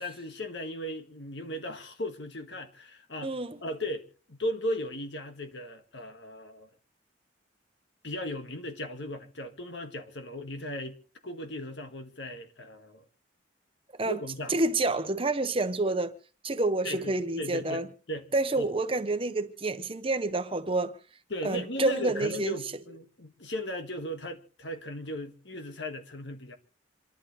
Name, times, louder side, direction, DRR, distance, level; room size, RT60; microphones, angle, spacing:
voice 1, 0.0-3.3 3.6-6.7 8.0-11.0 11.2-13.1 14.1-14.5 16.8-18.3 18.6-18.7 21.3-26.6, left 1 dB, 70° left, 1.8 m, -37 dB
voice 2, 3.2-3.6 14.0-14.2 14.5-16.1 16.4-17.9 18.3-21.0 21.4-22.6, right 2 dB, 30° right, 1.0 m, -28 dB
27.5 x 11.5 x 3.3 m
head